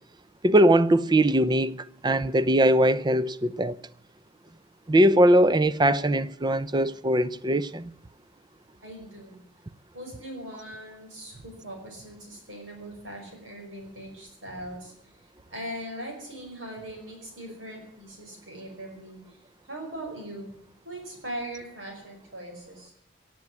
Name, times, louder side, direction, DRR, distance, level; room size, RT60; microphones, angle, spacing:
voice 1, 0.4-3.8 4.9-7.9, right 1 dB, 20° right, 0.6 m, -21 dB
voice 2, 8.8-9.4 9.9-15.1 15.5-19.4 19.7-20.5 20.8-22.9, right 1 dB, 70° right, 5.1 m, -40 dB
18.0 x 7.7 x 9.6 m
head